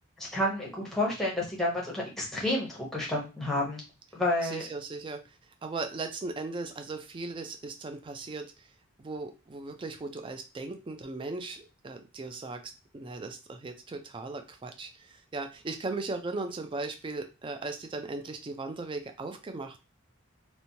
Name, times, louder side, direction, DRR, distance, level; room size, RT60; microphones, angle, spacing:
voice 1, 0.2-3.8 4.1-4.6, left 1 dB, ahead, -4 dB, 0.8 m, -30 dB
voice 2, 4.4-5.2 5.6-8.5 9.0-12.6 12.9-19.8, right 3 dB, 25° right, 6 dB, 0.3 m, -37 dB
3.0 x 2.1 x 2.7 m, 0.30 s
head